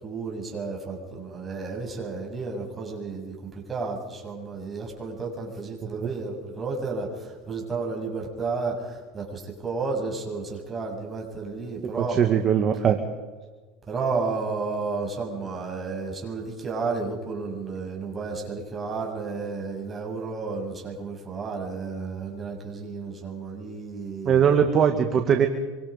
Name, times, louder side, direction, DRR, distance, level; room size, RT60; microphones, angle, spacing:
voice 1, 0.0-3.3 3.7-12.2 13.9-24.5, right 4 dB, 20° right, 0 dB, 7.9 m, -32 dB
voice 2, 12.1-13.0 24.3-25.5, right 8 dB, 35° right, 5 dB, 2.1 m, -20 dB
26.5 x 25.5 x 5.3 m, 1.3 s
supercardioid pair, 125°, 0 cm